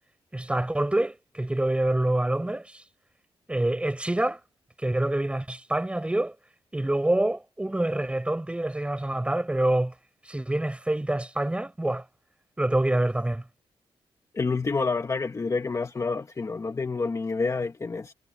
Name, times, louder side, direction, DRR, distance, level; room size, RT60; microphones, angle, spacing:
voice 1, 0.3-2.8 3.5-4.4 4.8-6.4 6.7-9.9 10.2-12.1 12.6-13.5, right 1 dB, 10° right, 5.9 m, -26 dB
voice 2, 14.3-18.1, left 4 dB, 30° left, 1.5 m, -28 dB
wide cardioid pair, 120°, 11 cm